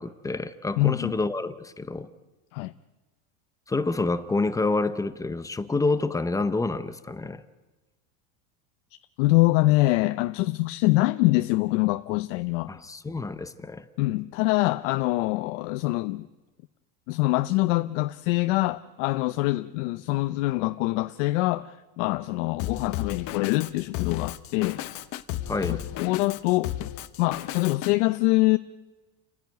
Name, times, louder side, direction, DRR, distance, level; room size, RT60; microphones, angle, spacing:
voice 1, 0.0-2.1 3.7-7.4 12.7-13.9 25.5-26.0, left 3 dB, 10° left, 0.7 m, -28 dB
voice 2, 0.8-1.2 2.5-2.7 9.2-12.7 14.0-16.3 17.1-24.8 25.7-26.8 27.2-28.6, left 20 dB, 75° left, 0.7 m, -24 dB
Drum kit, 22.6-27.9, left 13 dB, 50° left, 1.1 m, -34 dB
30.0 x 10.5 x 9.1 m
cardioid pair, 150°, 37 cm